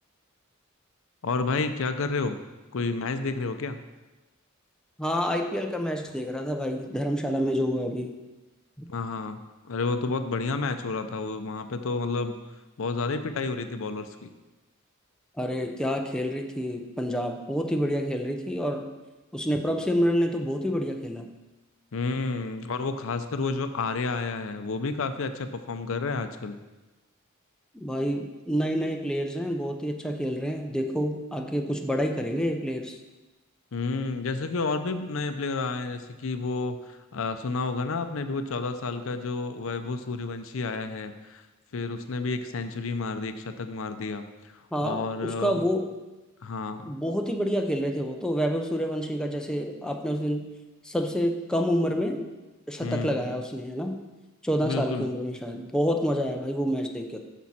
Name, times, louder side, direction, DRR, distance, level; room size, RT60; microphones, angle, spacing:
voice 1, 1.2-2.4 2.7-3.8 8.9-12.4 12.8-14.3 21.9-26.6 33.7-41.5 41.7-45.6 46.4-46.9 52.8-53.3 54.6-55.1, left 3 dB, 70° left, 9 dB, 0.6 m, -30 dB
voice 2, 5.0-8.2 8.8-8.9 15.4-18.9 19.3-21.3 27.8-33.0 44.7-45.9 46.8-50.5 50.8-52.3 52.7-54.0 54.4-57.2, equal, 5° left, 3 dB, 0.6 m, -28 dB
8.6 x 6.2 x 4.2 m, 1.1 s
head